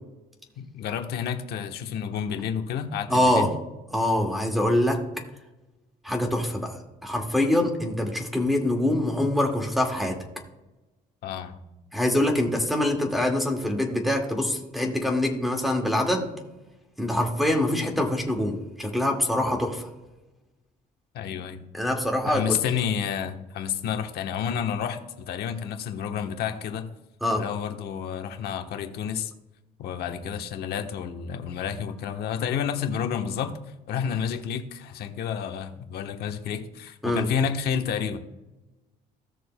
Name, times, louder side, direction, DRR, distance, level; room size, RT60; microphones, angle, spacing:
voice 1, 0.6-3.5 11.2-11.6 21.1-21.6 22.3-26.9 27.3-29.3 29.8-33.5 33.9-38.2, left 8 dB, 70° left, 5 dB, 1.1 m, -30 dB
voice 2, 3.1-3.5 3.9-5.0 6.0-6.8 7.0-10.2 11.9-16.3 17.0-19.9 21.7-22.6 27.2-27.4 37.0-37.2, left 1 dB, ahead, 2 dB, 2.0 m, -24 dB
16.5 x 6.6 x 2.2 m, 1.0 s
cardioid pair, 110°, 17 cm